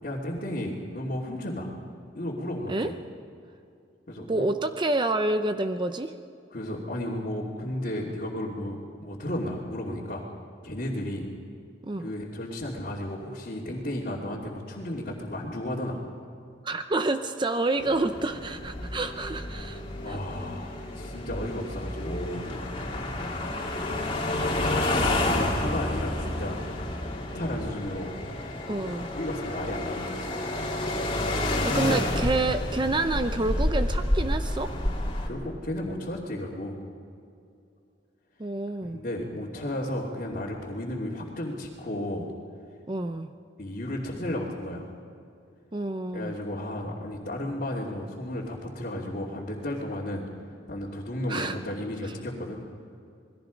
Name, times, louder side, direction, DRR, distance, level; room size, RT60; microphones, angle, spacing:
voice 1, 0.0-1.7 2.1-2.9 4.1-4.5 6.5-10.2 10.6-11.3 12.0-16.0 20.0-22.5 24.5-26.7 27.3-28.1 29.1-30.3 31.6-32.0 35.3-36.8 38.8-42.3 43.6-44.9 46.1-50.3 50.7-52.6, left 1 dB, 45° left, -6 dB, 2.7 m, -33 dB
voice 2, 4.3-6.1 11.8-12.1 16.6-19.8 20.1-20.2 28.7-29.1 31.6-34.7 38.4-39.0 42.9-43.3 45.7-46.3 51.3-51.6, right 2 dB, 25° right, 8 dB, 0.6 m, -28 dB
sound 1, 17.8-35.3, left 1 dB, 30° left, 2.9 m, -30 dB
28.0 x 20.5 x 5.2 m, 2.6 s
head